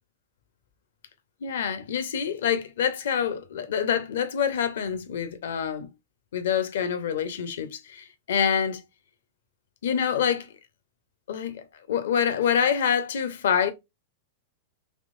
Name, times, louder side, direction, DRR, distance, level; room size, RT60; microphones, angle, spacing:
voice 1, 1.4-5.9 6.3-8.8 9.8-10.5 11.3-13.7, left 8 dB, 70° left, 0.7 m, -26 dB
3.6 x 3.0 x 2.4 m
hypercardioid pair, 105°, 0 cm